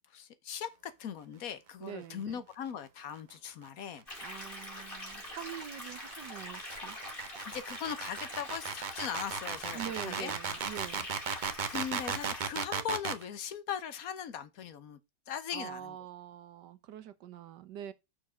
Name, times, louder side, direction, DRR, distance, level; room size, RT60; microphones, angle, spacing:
voice 1, 0.1-4.0 7.4-10.3 11.7-15.0 15.3-16.0, left 8 dB, 60° left, 1.2 m, -39 dB
voice 2, 1.8-2.4 4.2-7.0 9.7-11.1 15.5-17.9, right 10 dB, 80° right, 1.5 m, -44 dB
sound 1, 4.0-13.2, right 6 dB, 50° right, 0.5 m, -36 dB
sound 2, 4.1-12.5, left 1 dB, 30° left, 3.0 m, -44 dB
6.2 x 4.6 x 6.2 m
omnidirectional pair, 1.8 m